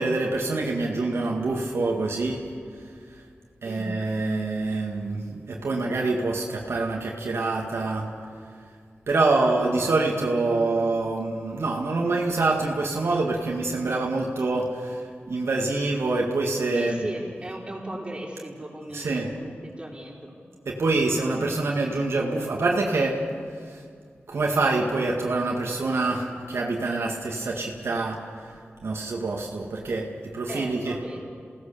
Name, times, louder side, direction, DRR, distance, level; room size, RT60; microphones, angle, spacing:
voice 1, 0.0-3.2 3.6-8.1 9.1-17.0 18.9-19.3 20.7-23.8 24.3-31.0, right 3 dB, 85° right, -1 dB, 2.2 m, -26 dB
voice 2, 16.7-20.4 30.5-31.2, right 1 dB, 25° right, -4 dB, 5.5 m, -36 dB
28.5 x 18.0 x 7.0 m, 2.1 s
wide cardioid pair, 95°, 4 cm